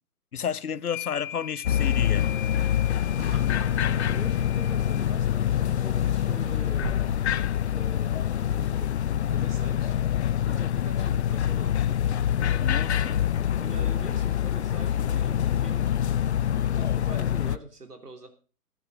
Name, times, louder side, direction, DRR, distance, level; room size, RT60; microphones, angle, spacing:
voice 1, 0.3-2.3 12.6-13.4, left 7 dB, 70° left, 1.0 m, -31 dB
sound 1, 0.8-5.1, left 12 dB, 30° left, 2.2 m, -41 dB
sound 2, 1.6-17.6, left 10 dB, 45° left, 0.7 m, -25 dB
sound 3, 2.6-8.9, right 3 dB, 30° right, 6.6 m, -43 dB
voice 2, 3.8-7.0 7.7-8.5 8.8-10.0 10.4-11.8 12.4-12.5 13.6-15.9 16.7-18.3, right 3 dB, 85° right, 3.4 m, -44 dB
18.0 x 10.0 x 5.2 m
figure-of-eight pair, 130°, 46 cm